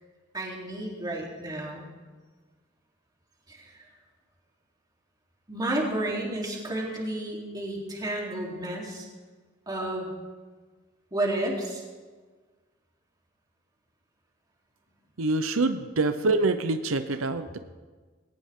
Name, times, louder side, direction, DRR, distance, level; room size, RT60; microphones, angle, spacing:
voice 1, 0.3-1.9 3.5-3.7 5.5-9.1 9.7-10.1 11.1-11.8, right 1 dB, 20° right, -3 dB, 3.6 m, -31 dB
voice 2, 15.2-17.6, right 3 dB, 85° right, 10 dB, 0.8 m, -25 dB
20.5 x 18.0 x 3.8 m, 1.4 s
head